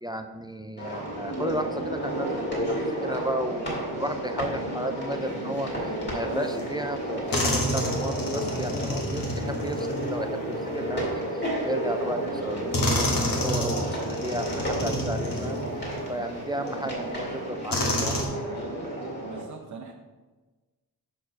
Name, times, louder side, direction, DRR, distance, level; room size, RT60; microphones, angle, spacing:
voice 1, 0.0-15.6 16.1-18.4, right 1 dB, 10° right, 6 dB, 0.3 m, -34 dB
sound 1, 0.8-19.4, right 1 dB, 30° left, 2.0 m, -32 dB
sound 2, 6.6-6.7 7.3-10.9 11.9-12.0 12.7-16.1 16.7-16.8 17.7-18.3, left 1 dB, 60° left, 1.4 m, -29 dB
voice 2, 19.3-20.0, right 4 dB, 50° right, 1 dB, 0.7 m, -41 dB
6.1 x 4.5 x 5.5 m, 1.2 s
wide cardioid pair, 125°, 38 cm